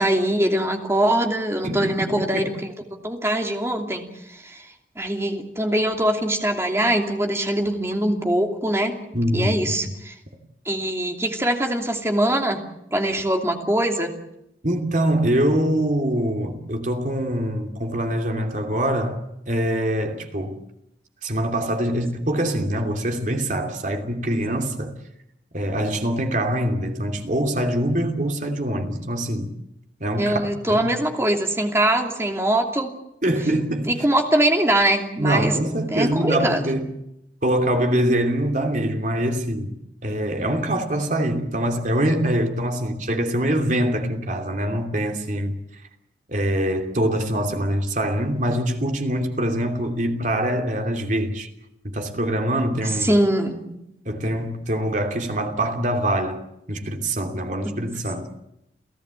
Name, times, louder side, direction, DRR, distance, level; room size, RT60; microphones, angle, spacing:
voice 1, 0.0-2.7 3.0-4.7 5.0-8.9 9.3-10.1 10.6-12.6 12.9-14.1 30.2-32.9 33.9-35.5 35.9-36.6 52.8-53.7 57.6-57.8, right 1 dB, 15° right, 2.8 m, -22 dB
voice 2, 1.6-2.5 9.1-9.7 14.6-20.6 21.2-25.0 25.5-29.6 30.0-30.8 33.2-33.9 35.2-37.0 37.4-45.6 46.3-51.5 51.8-53.1 54.0-56.4 56.7-58.3, right 1 dB, 45° right, 2.9 m, -24 dB
29.5 x 15.5 x 8.3 m
head